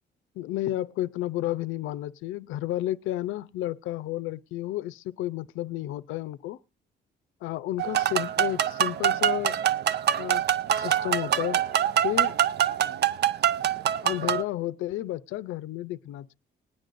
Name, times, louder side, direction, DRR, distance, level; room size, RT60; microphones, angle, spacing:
voice 1, 0.4-6.6 7.4-9.6 10.2-10.4 10.8-11.6 12.0-12.4 14.0-16.4, left 14 dB, 90° left, 0.5 m, -31 dB
sound 1, 7.8-14.4, right 10 dB, 55° right, 0.5 m, -25 dB
21.0 x 9.2 x 2.5 m
cardioid pair, 90°, 20 cm